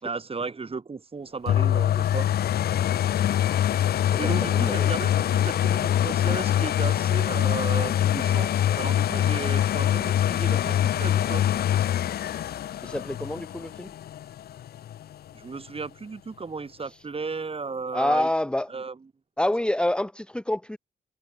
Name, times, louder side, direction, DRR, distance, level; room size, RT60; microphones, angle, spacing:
voice 1, 0.0-2.3 4.2-11.4 15.3-18.3 18.7-19.0, right 4 dB, 30° right, 4.5 m, -35 dB
sound 1, 1.5-15.1 15.7-15.8, left 11 dB, 60° left, 0.4 m, -24 dB
voice 2, 4.1-4.9 12.8-13.9 17.9-18.7 19.4-20.8, left 1 dB, 5° left, 1.2 m, -27 dB
cardioid pair, 120°, 18 cm